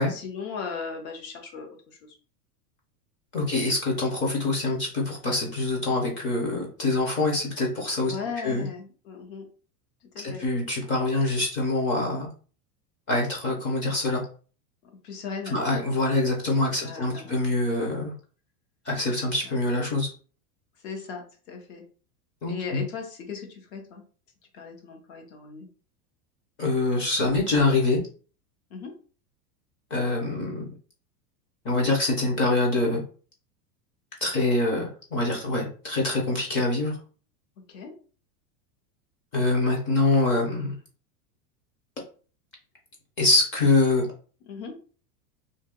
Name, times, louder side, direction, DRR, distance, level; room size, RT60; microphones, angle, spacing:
voice 1, 0.0-2.1 3.4-3.6 8.0-9.5 10.1-10.4 15.0-15.6 16.7-17.4 19.4-19.5 20.8-21.8 22.4-24.0 24.5-25.7 28.7-28.9 37.7-37.9 44.5-44.7, left 5 dB, 50° left, 3 dB, 1.1 m, -37 dB
voice 2, 3.3-8.1 8.4-8.7 10.2-12.3 13.1-14.2 15.5-18.1 18.9-20.1 22.4-22.8 26.6-28.0 29.9-30.6 31.6-33.0 34.2-37.0 39.3-40.7 43.2-44.1, left 2 dB, 25° left, -1 dB, 0.7 m, -25 dB
2.7 x 2.7 x 3.7 m, 0.39 s
supercardioid pair, 170°, 48 cm